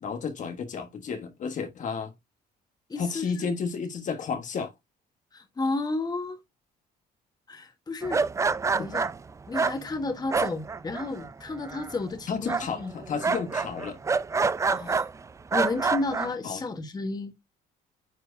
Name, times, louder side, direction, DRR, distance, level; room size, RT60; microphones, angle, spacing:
voice 1, 0.0-2.1 3.0-4.7 8.8-8.9 12.3-14.0 16.4-16.6, left 5 dB, 50° left, 1.3 m, -32 dB
voice 2, 2.9-3.5 5.3-6.4 7.5-8.2 8.7-9.1 9.5-12.9 14.7-15.0 15.5-17.3, left 3 dB, 25° left, 1.3 m, -32 dB
sound 1, 8.0-11.3 11.6-12.1 12.5-15.1 15.5-16.3, right 4 dB, 20° right, 0.4 m, -27 dB
9.4 x 4.4 x 2.6 m
cardioid pair, 110°, 17 cm